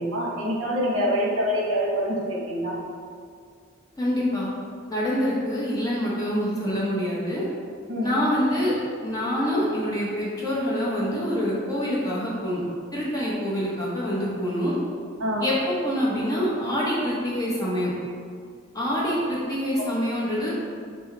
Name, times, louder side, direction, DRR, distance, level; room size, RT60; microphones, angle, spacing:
voice 1, 0.0-2.8 7.9-8.2 15.2-15.5, equal, 75° right, -2 dB, 0.8 m, -25 dB
voice 2, 4.0-4.5 4.9-7.4 8.0-8.7 9.0-12.6 12.9-14.7 15.4-17.9 18.7-20.5, equal, 20° left, -6 dB, 0.8 m, -26 dB
3.9 x 2.2 x 4.2 m, 2.2 s
head